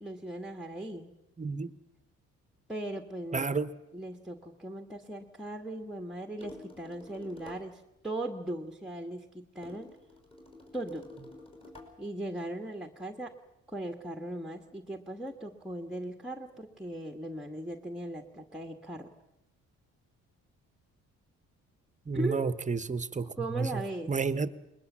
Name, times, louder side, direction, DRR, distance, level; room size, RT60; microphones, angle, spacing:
voice 1, 0.0-1.1 2.7-3.5 3.9-9.9 10.7-11.1 12.0-13.3 13.7-19.1 22.1-22.4 23.4-24.1, right 1 dB, ahead, 5 dB, 1.6 m, -38 dB
voice 2, 1.4-1.7 3.3-3.7 22.1-23.3 23.6-23.7 24.1-24.5, right 4 dB, 25° right, 15 dB, 1.1 m, -30 dB
sound 1, 6.4-7.8 9.6-12.0, left 2 dB, 20° left, 5.2 m, -50 dB
21.0 x 20.5 x 7.4 m, 0.89 s
cardioid pair, 90°, 30 cm